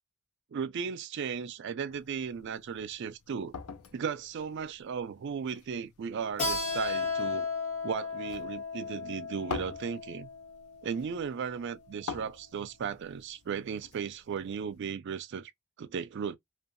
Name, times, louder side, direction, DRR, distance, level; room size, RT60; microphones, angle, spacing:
voice 1, 0.5-3.5 3.9-7.5 7.8-10.3 10.8-15.5 15.8-16.4, right 6 dB, 55° right, 0.3 m, -36 dB
sound 1, 1.9-14.8, left 5 dB, 90° left, 0.5 m, -47 dB
Keyboard (musical), 6.4-11.7, left 4 dB, 30° left, 1.4 m, -35 dB
2.6 x 2.3 x 2.5 m
head